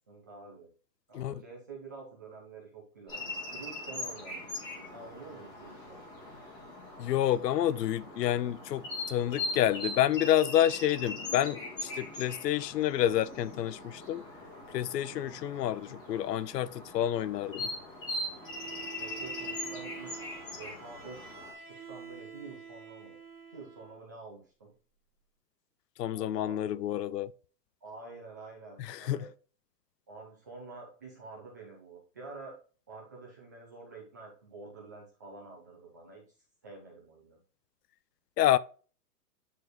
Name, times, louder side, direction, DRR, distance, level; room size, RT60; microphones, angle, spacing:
voice 1, 0.1-0.7 1.1-4.4 4.8-6.0 19.0-20.1 20.5-21.3 21.7-23.2 23.5-24.7 26.1-26.6 27.8-29.3 30.1-32.6 32.9-36.2 36.6-37.4, right 3 dB, 10° right, 0.6 m, -48 dB
sound 1, 3.1-21.5, left 2 dB, 10° left, 1.5 m, -41 dB
voice 2, 7.0-8.8 9.1-14.2 14.7-17.7 26.0-27.3 28.8-29.2 38.4-38.6, left 12 dB, 75° left, 0.6 m, -29 dB
Bowed string instrument, 18.4-24.0, right 6 dB, 65° right, 1.8 m, -47 dB
9.2 x 4.2 x 3.1 m
hypercardioid pair, 175°, 48 cm